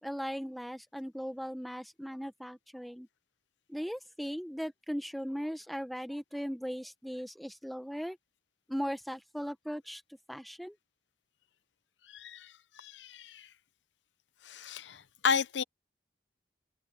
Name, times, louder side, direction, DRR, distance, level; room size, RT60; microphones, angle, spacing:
voice 1, 0.0-3.1 3.7-8.2 8.7-10.0 10.3-10.8, equal, ahead, 1.2 m, -38 dB
voice 2, 12.1-13.5 14.4-15.6, left 6 dB, 85° left, 0.7 m, -33 dB
open air
head